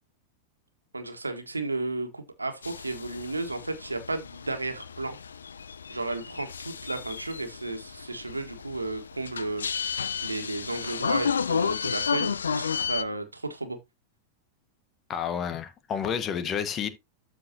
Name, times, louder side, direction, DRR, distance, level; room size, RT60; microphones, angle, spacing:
voice 1, 0.9-5.2 5.9-9.7 10.2-13.8, right 2 dB, 80° right, 1.6 m, -33 dB
sound 1, 2.6-13.0, left 6 dB, 70° left, 0.4 m, -32 dB
voice 2, 15.1-16.9, left 8 dB, 30° left, 1.3 m, -30 dB
13.0 x 4.6 x 2.9 m
figure-of-eight pair, 90°, 0 cm